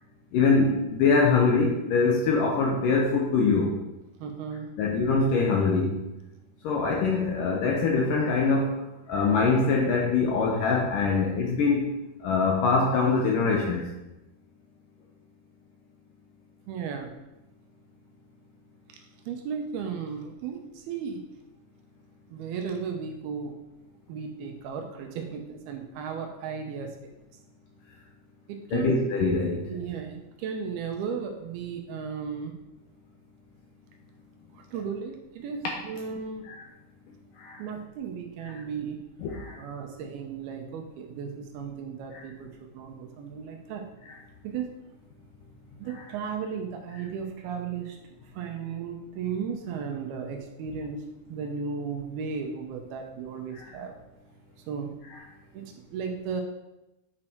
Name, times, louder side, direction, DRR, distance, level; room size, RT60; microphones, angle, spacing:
voice 1, 0.3-3.7 4.8-5.9 6.6-8.7 9.1-11.9 12.2-13.8 28.7-29.6 36.5-36.6 37.4-37.6 39.2-39.5 42.1-42.2 53.5-53.6, left 4 dB, 70° left, -1 dB, 2.1 m, -23 dB
voice 2, 4.2-4.7 16.7-17.1 19.3-21.2 22.3-23.5 24.1-27.1 28.5-29.0 29.7-32.5 34.5-36.5 37.6-39.0 39.5-43.8 44.4-44.7 45.8-48.0 48.3-53.9 54.7-54.9 55.5-56.4, right 6 dB, 75° right, 4 dB, 2.6 m, -35 dB
8.7 x 6.0 x 4.5 m, 0.95 s
omnidirectional pair, 4.8 m